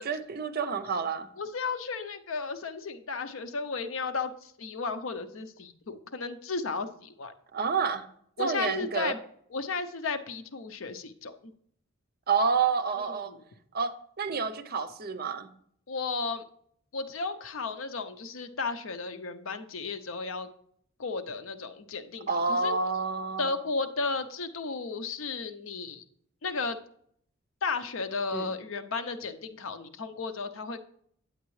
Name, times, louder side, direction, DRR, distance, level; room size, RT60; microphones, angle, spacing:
voice 1, 0.0-1.3 7.5-8.1 8.4-9.2 12.3-13.3 13.7-15.5 22.3-23.5 28.3-28.5, right 5 dB, 45° right, 10 dB, 0.6 m, -29 dB
voice 2, 1.4-7.3 8.4-9.2 9.5-11.5 13.0-13.4 15.9-16.4 16.9-20.5 21.0-22.7 23.4-26.0 26.4-26.8 27.6-30.8, left 4 dB, 75° left, 9 dB, 0.6 m, -34 dB
9.3 x 8.0 x 3.1 m, 0.66 s
head